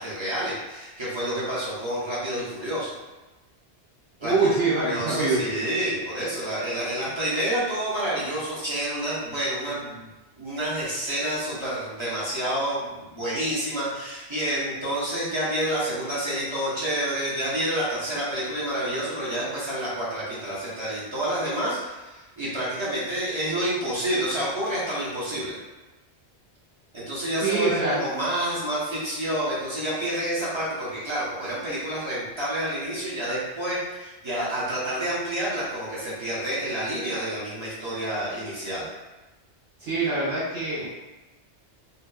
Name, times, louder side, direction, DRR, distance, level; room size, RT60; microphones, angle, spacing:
voice 1, 0.0-2.9 4.2-10.1 10.4-25.6 26.9-38.9, right 1 dB, 30° right, -9 dB, 0.8 m, -29 dB
voice 2, 4.2-5.4 27.4-28.0 39.8-40.9, right 3 dB, 80° right, -9 dB, 1.2 m, -24 dB
2.7 x 2.4 x 2.3 m, 1.1 s
omnidirectional pair, 1.2 m